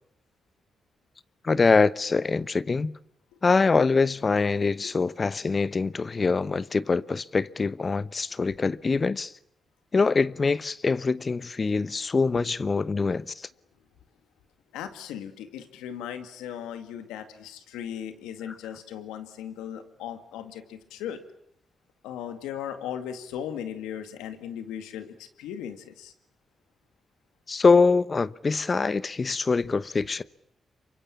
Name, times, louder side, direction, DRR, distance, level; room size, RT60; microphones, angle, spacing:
voice 1, 1.4-2.9 3.4-9.3 9.9-13.5 18.5-18.6 27.5-30.2, left 4 dB, 45° left, 1.0 m, -24 dB
voice 2, 14.7-21.2 22.0-26.1, left 9 dB, 90° left, 2.1 m, -37 dB
28.0 x 24.5 x 8.6 m
supercardioid pair, 40°, 0 cm